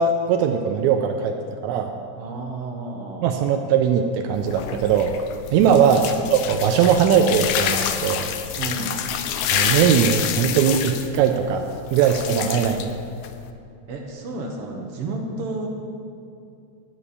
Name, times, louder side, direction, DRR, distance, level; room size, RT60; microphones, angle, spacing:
voice 1, 0.0-1.4 1.6-1.9 3.2-5.2 5.5-6.0 6.3-8.3 9.5-12.8, right 7 dB, 80° right, 5 dB, 1.9 m, -20 dB
voice 2, 2.1-3.3 5.6-6.1 8.6-9.0 12.2-12.6 13.9-15.7, right 2 dB, 65° right, 2 dB, 1.7 m, -31 dB
sound 1, 4.3-13.5, left 9 dB, 80° left, 1.5 m, -28 dB
11.0 x 5.9 x 8.4 m, 2.4 s
omnidirectional pair, 3.4 m